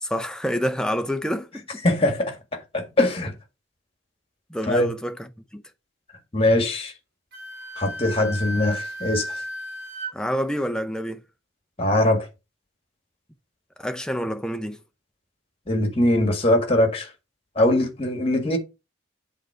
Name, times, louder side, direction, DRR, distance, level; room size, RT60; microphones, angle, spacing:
voice 1, 0.0-1.8 4.5-5.6 10.1-11.2 13.8-14.8, equal, 5° left, 0.6 m, -28 dB
voice 2, 1.8-2.4 2.7-3.3 4.7-4.9 6.3-6.9 7.8-9.4 11.8-12.3 15.7-17.1 17.5-18.6, left 1 dB, 25° left, 1.7 m, -21 dB
Wind instrument woodwind instrument, 7.3-10.1, equal, 50° right, 2.5 m, -34 dB
7.2 x 3.9 x 4.8 m
head